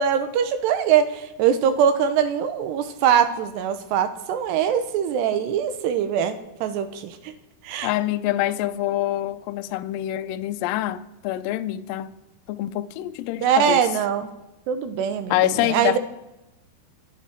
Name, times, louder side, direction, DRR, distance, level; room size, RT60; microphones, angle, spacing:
voice 1, 0.0-7.3 7.6-7.9 13.4-14.3 14.7-16.0, right 8 dB, 85° right, 3.2 m, -22 dB
voice 2, 7.8-12.1 12.5-13.8 15.3-16.0, left 14 dB, 85° left, 2.0 m, -25 dB
26.5 x 9.0 x 4.5 m
omnidirectional pair, 4.8 m